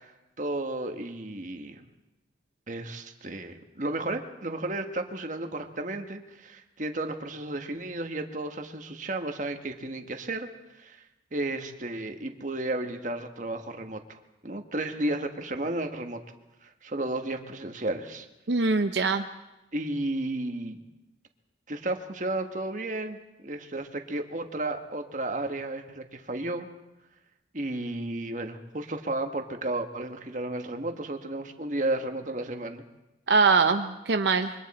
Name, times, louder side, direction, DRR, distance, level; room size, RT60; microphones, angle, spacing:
voice 1, 0.0-1.8 2.7-10.5 10.7-11.0 11.3-16.2 16.6-18.3 19.7-20.8 21.7-23.2 23.4-26.7 27.5-32.8, right 2 dB, 45° right, 5 dB, 1.5 m, -33 dB
voice 2, 18.5-19.2 33.3-34.5, right 4 dB, 80° right, 6 dB, 0.8 m, -22 dB
25.5 x 23.5 x 4.3 m, 0.97 s
head